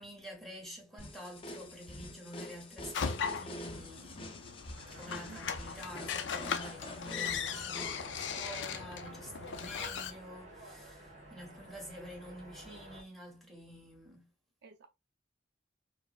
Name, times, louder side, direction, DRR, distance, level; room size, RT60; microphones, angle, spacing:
voice 1, 0.0-4.3 4.9-14.3, equal, ahead, 1.2 m, -48 dB
sound 1, 1.0-8.2, left 1 dB, 30° left, 0.6 m, -46 dB
sound 2, 2.9-10.1, left 7 dB, 80° left, 0.4 m, -38 dB
sound 3, 4.7-13.0, right 1 dB, 40° right, 1.3 m, -52 dB
voice 2, 5.2-5.6 11.9-12.4 14.6-14.9, right 4 dB, 65° right, 0.4 m, -55 dB
4.5 x 2.0 x 2.3 m
head